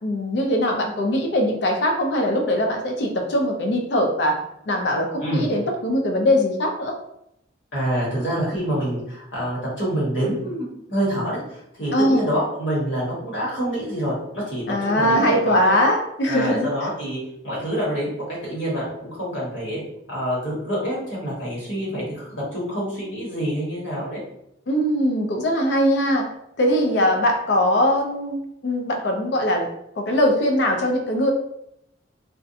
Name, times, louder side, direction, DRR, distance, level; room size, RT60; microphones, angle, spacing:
voice 1, 0.0-4.4 4.7-6.9 11.9-12.2 14.7-16.7 24.7-26.2 26.6-29.7 30.0-31.3, equal, 60° left, 3 dB, 0.4 m, -21 dB
voice 2, 5.2-5.5 7.7-15.8 16.3-17.2 17.4-19.8 20.1-24.2, equal, 80° left, -6 dB, 1.2 m, -26 dB
2.4 x 2.1 x 2.6 m, 0.78 s
head